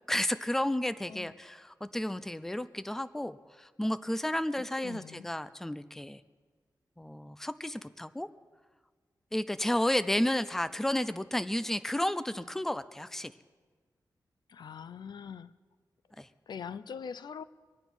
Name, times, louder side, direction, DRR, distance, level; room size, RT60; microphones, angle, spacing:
voice 1, 0.1-6.2 7.0-8.3 9.3-13.3 16.2-16.3, left 1 dB, 5° left, 13 dB, 0.4 m, -32 dB
voice 2, 4.5-5.3 14.5-15.5 16.5-17.4, left 7 dB, 80° left, 15 dB, 0.5 m, -43 dB
24.5 x 9.0 x 6.1 m, 1.4 s
wide cardioid pair, 160°, 7 cm